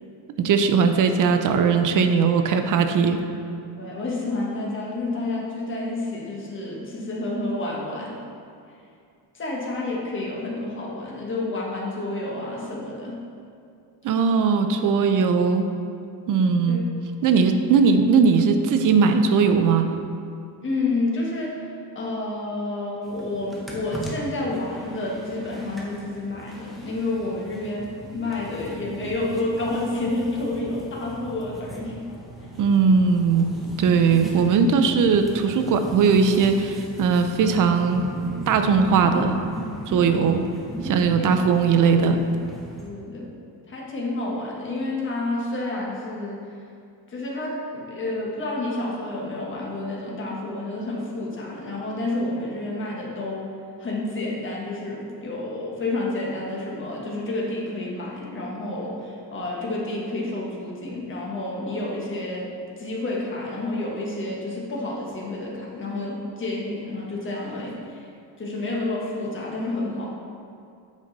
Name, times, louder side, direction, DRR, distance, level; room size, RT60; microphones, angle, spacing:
voice 1, 0.4-3.2 14.0-15.7 16.3-16.8 17.2-19.8 32.6-33.5 33.8-38.0 38.5-39.4 39.9-40.4 40.8-42.2, right 5 dB, 50° right, 7 dB, 0.6 m, -19 dB
voice 2, 3.8-8.2 9.3-13.2 16.7-16.8 20.6-32.0 37.3-37.5 41.2-41.3 42.8-43.3 43.7-46.4 47.1-53.5 53.8-62.5 62.8-68.1 68.4-70.1, left 2 dB, 30° left, -3 dB, 1.4 m, -29 dB
sound 1, 23.0-42.9, right 1 dB, ahead, 0.9 m, -38 dB
8.3 x 5.2 x 4.0 m, 2.4 s
cardioid pair, 155°, 41 cm